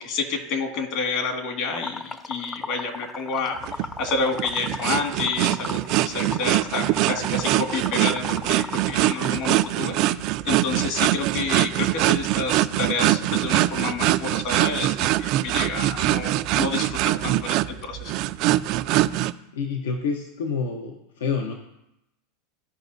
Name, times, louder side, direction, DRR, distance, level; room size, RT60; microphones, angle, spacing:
voice 1, 0.0-18.1, left 4 dB, 55° left, 4 dB, 1.9 m, -29 dB
Liquid, 1.7-9.7, left 4 dB, 20° left, 0.6 m, -35 dB
sound 1, 3.6-19.3, right 16 dB, 55° right, 0.4 m, -23 dB
voice 2, 19.5-21.5, left 5 dB, 85° left, 3 dB, 1.0 m, -28 dB
15.5 x 5.2 x 2.7 m, 0.88 s
hypercardioid pair, 110°, 0 cm